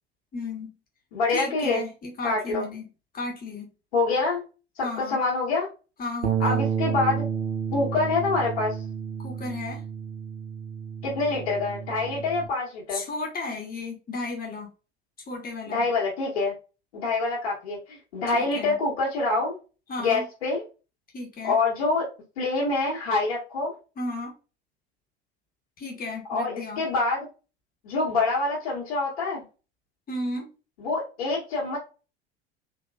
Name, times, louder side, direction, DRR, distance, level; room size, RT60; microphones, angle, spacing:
voice 1, 0.3-0.8 1.3-2.9 3.1-3.7 4.8-5.2 6.0-6.6 9.2-9.8 12.9-14.7 15.3-15.8 18.3-18.8 19.9-20.3 21.1-21.5 24.0-24.3 25.8-26.8 30.1-30.5, left 2 dB, 30° left, 1 dB, 1.3 m, -34 dB
voice 2, 1.1-1.8 2.2-2.7 3.9-4.4 4.8-5.7 6.4-7.2 7.7-8.8 11.0-13.0 15.7-16.5 16.9-19.6 20.0-20.6 21.4-22.1 22.4-23.7 26.3-27.3 27.8-29.4 30.8-31.8, left 3 dB, 70° left, -6 dB, 1.5 m, -26 dB
Bass guitar, 6.2-12.5, right 7 dB, 75° right, 0.8 m, -30 dB
4.0 x 2.9 x 2.4 m, 0.32 s
figure-of-eight pair, 70°, 31 cm